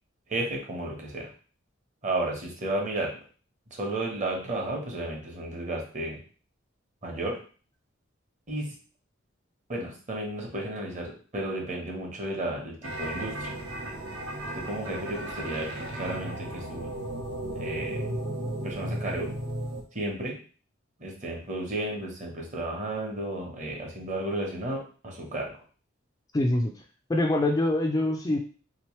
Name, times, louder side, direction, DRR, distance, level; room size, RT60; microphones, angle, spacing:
voice 1, 0.3-1.3 2.0-3.1 3.7-6.2 7.0-7.4 8.5-8.7 9.7-13.5 14.6-16.9 17.6-18.0 18.6-19.3 19.9-20.4 21.0-25.5, right 1 dB, 40° right, 0 dB, 1.0 m, -33 dB
sound 1, 12.8-19.8, right 1 dB, 65° right, 0.9 m, -35 dB
voice 2, 26.3-26.8 27.1-28.4, left 1 dB, 20° left, 2 dB, 0.3 m, -24 dB
3.5 x 3.0 x 3.1 m, 0.39 s
head